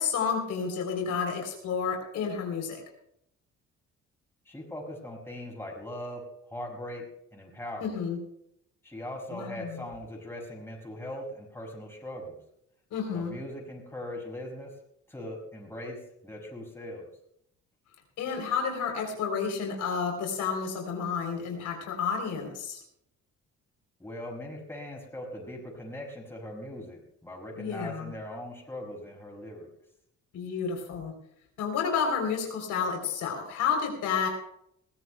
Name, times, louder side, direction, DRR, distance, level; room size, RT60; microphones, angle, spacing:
voice 1, 0.0-2.8 7.8-8.2 9.3-9.8 12.9-13.3 18.2-22.8 27.6-28.1 30.3-31.1 31.6-34.3, left 6 dB, 85° left, 2 dB, 3.6 m, -30 dB
voice 2, 4.4-6.2 6.5-7.0 7.3-8.0 8.8-12.4 13.1-14.7 15.1-17.0 24.0-29.7, left 1 dB, 10° left, -2 dB, 6.2 m, -40 dB
21.5 x 16.0 x 2.3 m, 0.72 s
cardioid pair, 90°, 30 cm